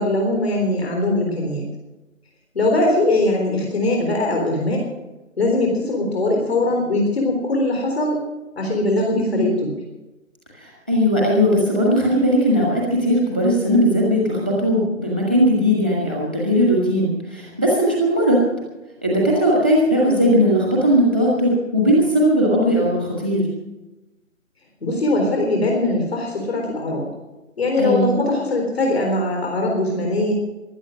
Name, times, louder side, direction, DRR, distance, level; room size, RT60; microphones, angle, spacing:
voice 1, 0.0-1.6 2.5-4.9 5.4-8.2 8.6-9.5 24.8-27.1 27.6-30.3, left 2 dB, 50° left, 0 dB, 3.7 m, -21 dB
voice 2, 9.1-9.5 10.5-18.4 19.0-23.5 27.8-28.1, equal, 5° left, -3 dB, 1.1 m, -18 dB
15.5 x 11.5 x 6.2 m, 1.0 s
figure-of-eight pair, 175°, 40 cm